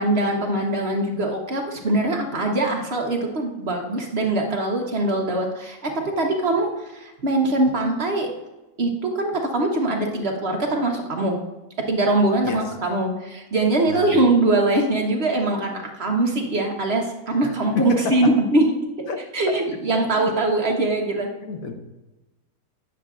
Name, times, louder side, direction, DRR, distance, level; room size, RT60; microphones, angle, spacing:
voice 1, 0.0-5.9 6.2-8.3 8.8-11.3 11.9-18.7 19.3-21.3, right 2 dB, 50° right, 1 dB, 1.1 m, -22 dB
voice 2, 17.7-18.3 19.1-19.2 19.5-19.6 20.1-20.3 20.7-20.8 21.4-21.7, left 5 dB, 70° left, 4 dB, 1.2 m, -29 dB
9.2 x 6.7 x 2.4 m, 1.0 s
omnidirectional pair, 1.6 m